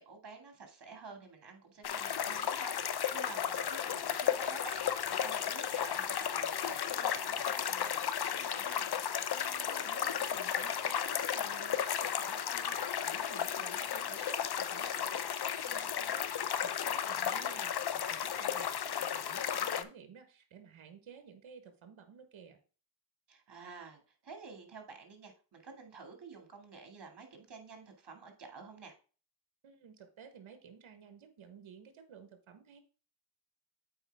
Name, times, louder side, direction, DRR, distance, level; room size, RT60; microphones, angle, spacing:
voice 1, 0.0-8.9 17.1-17.5 23.3-28.9, right 4 dB, 60° right, 4 dB, 2.3 m, -50 dB
sound 1, 1.8-19.8, left 8 dB, 55° left, 0.7 m, -34 dB
voice 2, 9.3-22.6 29.6-32.8, right 7 dB, 80° right, 8 dB, 1.3 m, -54 dB
8.0 x 4.9 x 3.5 m, 0.37 s
cardioid pair, 65°, 47 cm